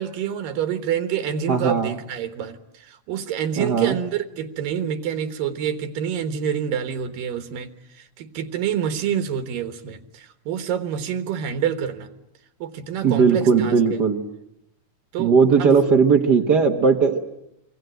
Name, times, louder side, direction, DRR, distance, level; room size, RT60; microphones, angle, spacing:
voice 1, 0.0-2.6 2.9-7.7 8.0-12.1 12.6-13.8 15.1-15.3 15.6-15.7, right 8 dB, 90° right, 9 dB, 3.1 m, -27 dB
voice 2, 1.5-2.0 3.6-3.9 13.0-14.2 15.2-17.2, right 5 dB, 65° right, 4 dB, 1.0 m, -18 dB
26.5 x 23.0 x 9.1 m, 0.82 s
omnidirectional pair, 3.8 m